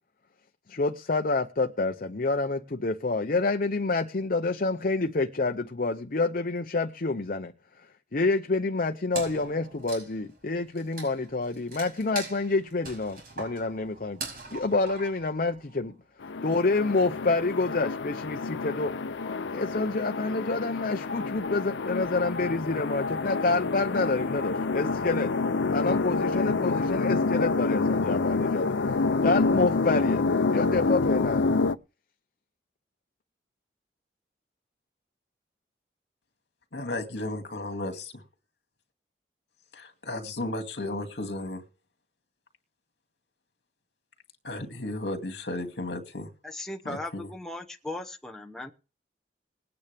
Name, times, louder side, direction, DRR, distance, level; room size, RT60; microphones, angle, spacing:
voice 1, 0.7-7.5 7.8-7.9 8.1-16.0 16.4-18.9 19.5-25.3 25.7-28.8 29.2-30.3 30.5-31.4, left 3 dB, 50° left, 0.7 m, -28 dB
Wood, 9.1-15.9, right 3 dB, 55° right, 5.8 m, -42 dB
sound 1, 16.2-31.7, left 3 dB, 85° left, 0.6 m, -28 dB
sound 2, 21.1-21.7 22.2-22.5 23.0-25.6 26.1-27.8 28.3-29.0 29.4-29.8, left 3 dB, 80° right, 3.1 m, -37 dB
voice 2, 36.7-38.2 39.7-41.6 44.4-46.3 46.9-47.3, left 2 dB, 70° left, 2.3 m, -34 dB
voice 3, 46.4-48.7, left 2 dB, 5° left, 0.9 m, -37 dB
20.0 x 9.4 x 3.5 m
head